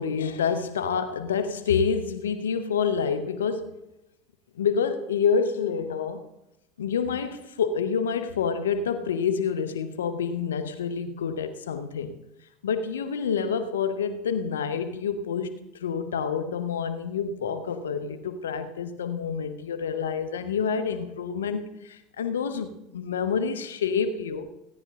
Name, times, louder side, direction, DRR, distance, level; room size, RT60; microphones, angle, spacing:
voice 1, 0.0-3.7 4.5-6.2 6.8-12.1 12.6-15.5 15.8-24.5, left 6 dB, 85° left, 11 dB, 1.1 m, -28 dB
17.0 x 9.8 x 3.7 m, 0.89 s
hypercardioid pair, 80°, 0 cm